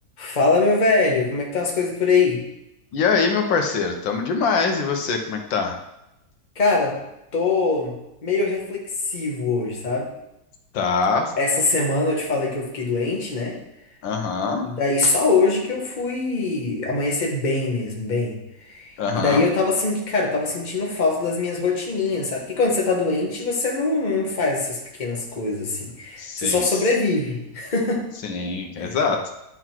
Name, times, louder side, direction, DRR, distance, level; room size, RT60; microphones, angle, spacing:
voice 1, 0.2-2.4 6.5-7.0 7.3-8.8 9.1-10.1 11.4-13.5 14.6-18.4 18.6-28.0 28.8-29.0, left 3 dB, 25° left, -1 dB, 1.4 m, -23 dB
voice 2, 2.9-5.7 10.7-11.3 14.0-14.7 19.0-19.4 26.2-26.6 28.2-29.3, left 5 dB, 90° left, 4 dB, 1.7 m, -23 dB
11.0 x 4.0 x 4.5 m, 0.88 s
omnidirectional pair, 2.0 m